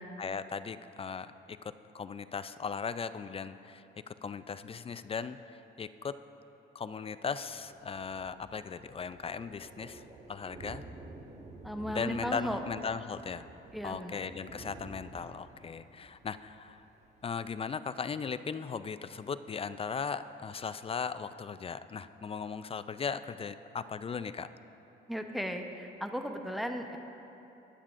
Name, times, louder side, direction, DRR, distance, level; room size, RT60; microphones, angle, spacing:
voice 1, 0.2-1.6 1.9-3.8 4.2-6.2 6.7-10.0 10.3-10.8 11.9-13.5 13.8-16.8 17.2-24.5, left 5 dB, 30° left, 13 dB, 0.3 m, -37 dB
Thunder, 7.5-17.5, right 2 dB, 35° right, 1.6 m, -51 dB
voice 2, 11.6-12.6 13.7-14.3 25.1-27.0, equal, ahead, 4 dB, 0.8 m, -36 dB
21.5 x 8.8 x 2.5 m, 2.9 s
cardioid pair, 90°, 20 cm